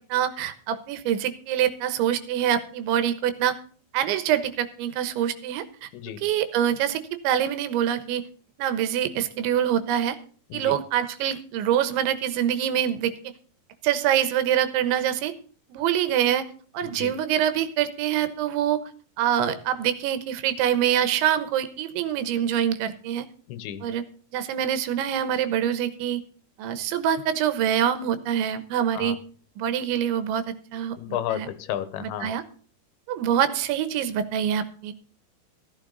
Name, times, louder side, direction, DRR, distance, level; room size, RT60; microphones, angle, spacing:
voice 1, 0.0-3.6 3.9-5.9 6.2-8.2 8.6-10.2 10.5-13.1 13.8-15.3 15.7-16.5 16.7-18.8 19.2-23.3 23.8-24.0 24.3-26.2 26.6-29.2 29.6-30.4 30.7-31.0 31.3-31.5 32.0-32.4 33.1-34.9, right 10 dB, 80° right, 12 dB, 3.5 m, -25 dB
voice 2, 5.9-6.2 10.5-10.8 16.8-17.1 23.5-23.8 28.9-29.2 31.0-32.3, left 11 dB, 80° left, 13 dB, 3.2 m, -32 dB
14.5 x 12.5 x 4.0 m, 0.43 s
omnidirectional pair, 5.3 m